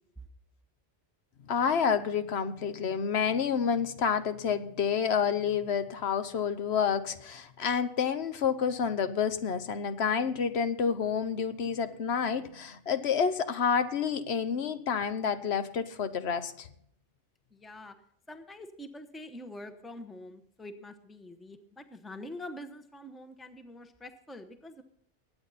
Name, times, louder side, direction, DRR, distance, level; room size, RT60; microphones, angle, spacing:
voice 1, 1.4-16.7, left 6 dB, 65° left, 11 dB, 1.1 m, -29 dB
voice 2, 17.5-18.0 18.3-24.8, left 1 dB, ahead, 8 dB, 0.8 m, -45 dB
22.0 x 8.9 x 4.1 m, 0.68 s
omnidirectional pair, 1.2 m